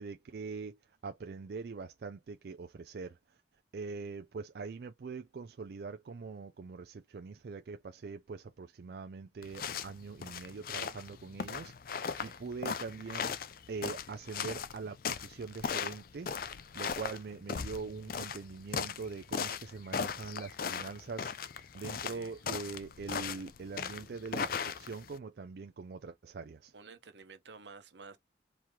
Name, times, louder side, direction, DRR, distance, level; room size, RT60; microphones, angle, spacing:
voice 1, 0.0-3.4 3.7-26.7, right 4 dB, 65° right, 0.4 m, -43 dB
sound 1, 9.4-25.2, left 6 dB, 55° left, 0.4 m, -38 dB
voice 2, 12.0-12.4 22.0-22.4 26.7-28.2, right 4 dB, 90° right, 1.0 m, -52 dB
4.7 x 2.9 x 3.6 m
head